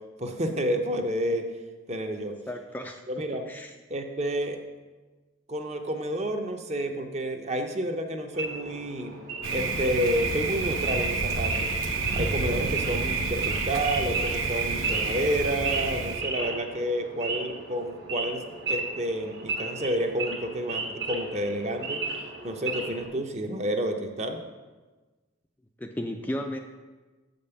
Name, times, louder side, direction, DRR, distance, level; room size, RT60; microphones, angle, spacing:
voice 1, 0.2-1.5 1.9-2.3 3.1-3.4 3.9-4.6 5.5-9.2 9.5-11.7 12.1-18.4 18.7-22.0 22.4-24.4, equal, 35° right, 5 dB, 0.7 m, -30 dB
voice 2, 2.5-3.7 25.8-26.6, left 1 dB, 10° left, 3 dB, 0.4 m, -35 dB
Wild animals / Idling, 8.3-23.1, right 3 dB, 60° right, 1.4 m, -35 dB
Thunder, 9.4-16.2, right 4 dB, 75° right, 0.8 m, -29 dB
7.5 x 5.2 x 6.9 m, 1.3 s
head